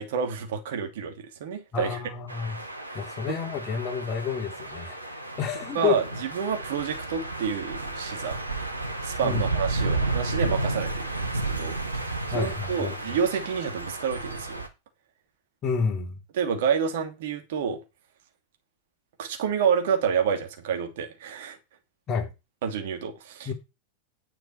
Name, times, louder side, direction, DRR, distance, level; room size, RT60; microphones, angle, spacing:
voice 1, 0.0-2.0 2.9-3.4 5.7-8.4 9.0-14.6 16.3-17.8 19.2-21.6 22.6-23.5, right 7 dB, 55° right, 2.8 m, -29 dB
voice 2, 1.7-2.6 2.9-6.0 9.2-9.4 12.3-12.9 15.6-16.1 22.1-22.3 23.4-23.5, left 6 dB, 30° left, 3.1 m, -29 dB
sound 1, 2.3-14.7, right 2 dB, 85° right, 2.0 m, -32 dB
10.5 x 8.6 x 4.6 m
figure-of-eight pair, 90°, 0 cm